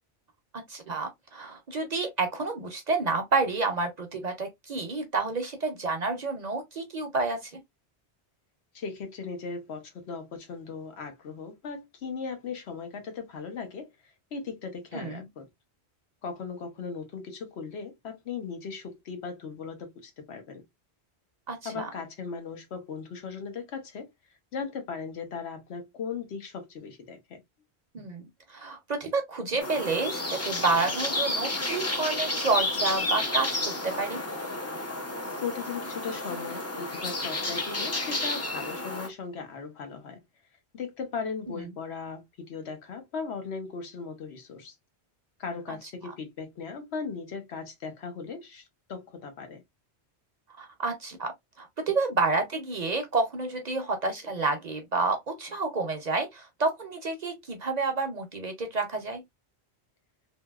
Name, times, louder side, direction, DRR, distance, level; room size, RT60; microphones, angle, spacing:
voice 1, 0.7-7.5 14.9-15.3 21.5-21.9 27.9-34.2 41.5-41.6 45.7-45.8 50.6-51.3 51.6-59.2, right 3 dB, 50° right, 0.6 m, -29 dB
voice 2, 8.7-15.5 16.2-20.6 21.6-24.1 24.5-27.4 35.4-40.2 40.7-44.7 45.4-49.6, left 5 dB, 75° left, 1.0 m, -38 dB
sound 1, 29.6-39.1, left 2 dB, 25° left, 0.4 m, -31 dB
2.8 x 2.7 x 2.3 m
omnidirectional pair, 1.1 m